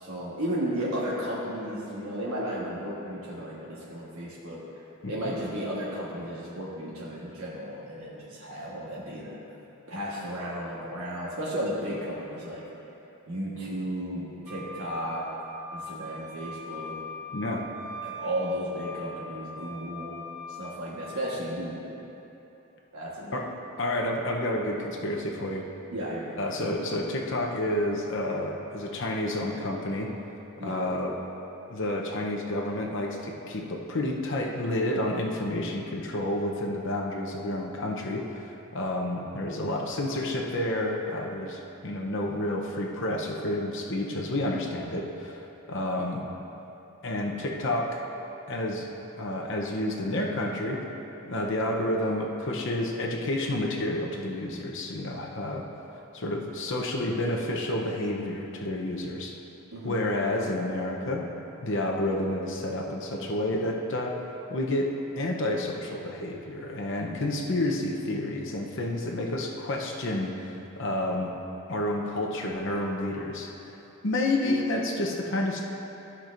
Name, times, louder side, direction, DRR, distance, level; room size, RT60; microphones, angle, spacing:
voice 1, 0.0-4.6 5.0-9.4 9.9-12.6 13.3-15.2 15.7-17.0 18.0-20.2 20.6-21.9 22.9-23.4 25.9-26.4 30.6-30.8 59.7-60.0, equal, 75° right, -7 dB, 1.4 m, -34 dB
Wind instrument woodwind instrument, 14.5-21.2, left 1 dB, 5° right, 0.9 m, -41 dB
voice 2, 17.3-17.7 23.3-23.5 23.8-25.7 26.4-30.1 30.6-31.2 31.7-46.2 47.0-48.0 48.5-48.9 49.2-50.8 51.2-55.7 56.1-59.3 59.8-61.3 61.6-64.2 64.5-71.3 71.7-73.7 74.0-75.6, left 1 dB, 60° left, 0 dB, 0.8 m, -30 dB
14.5 x 6.0 x 2.6 m, 3.0 s
head